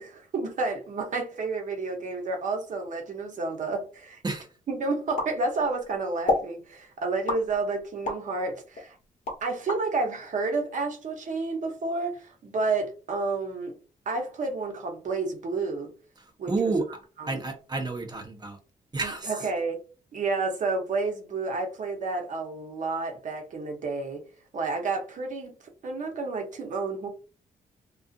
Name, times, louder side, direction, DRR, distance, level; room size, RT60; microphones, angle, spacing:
voice 1, 0.0-4.2 4.7-9.0 9.4-13.8 14.1-15.9 16.4-16.7 17.2-17.4 19.0-19.8 20.1-24.2 24.5-25.5 25.8-27.1, right 3 dB, 60° right, 0.8 m, -30 dB
sound 1, 5.2-5.8 6.3-6.5 7.3-8.3 8.7-9.8, left 3 dB, 55° left, 0.9 m, -29 dB
voice 2, 16.5-18.6 18.9-19.3, right 3 dB, 30° right, 0.7 m, -30 dB
2.5 x 2.4 x 2.4 m
cardioid pair, 90°, 15 cm